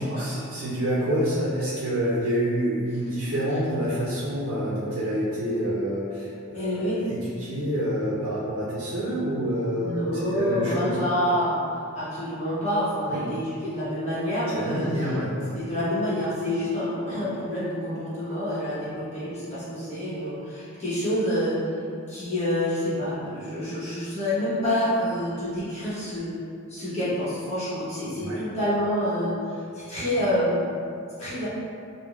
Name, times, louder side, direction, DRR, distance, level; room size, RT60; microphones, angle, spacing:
voice 1, 0.0-11.1 13.1-13.3 14.5-15.5 28.2-28.4, equal, 75° right, -9 dB, 0.5 m, -27 dB
voice 2, 6.5-7.0 9.8-11.6 11.9-15.1 15.5-21.6 22.1-26.3 26.7-29.3 29.7-30.8 31.2-31.5, equal, 30° left, -12 dB, 1.0 m, -27 dB
3.6 x 2.1 x 2.3 m, 2.4 s
head